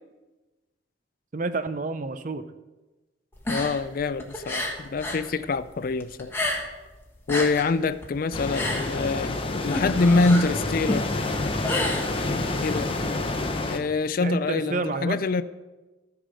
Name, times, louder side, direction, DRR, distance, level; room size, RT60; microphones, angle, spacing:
voice 1, 1.3-2.4 14.2-15.2, right 3 dB, 45° right, 0.6 m, -29 dB
sound 1, 3.3-5.3 5.6-6.9 7.2-12.6, left 1 dB, 10° left, 1.4 m, -30 dB
voice 2, 3.5-6.3 7.3-11.1 12.6-12.9 13.7-15.4, left 3 dB, 50° left, 0.4 m, -25 dB
sound 2, 8.3-13.8, left 2 dB, 30° left, 0.8 m, -28 dB
14.0 x 4.8 x 6.3 m
head